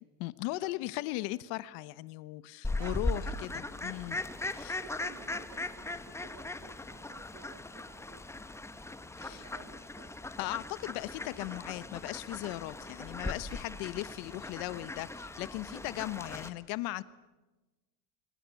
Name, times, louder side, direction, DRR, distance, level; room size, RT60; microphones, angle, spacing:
voice 1, 0.2-4.2 4.5-4.8 9.2-9.5 10.4-17.0, left 18 dB, 60° left, 16 dB, 1.1 m, -38 dB
Fowl, 2.6-16.5, left 2 dB, 5° left, 1.1 m, -39 dB
voice 2, 2.8-3.2 4.7-8.4 9.2-10.2, right 8 dB, 40° right, 9 dB, 2.6 m, -54 dB
24.5 x 24.0 x 8.2 m, 1.1 s
supercardioid pair, 145°, 47 cm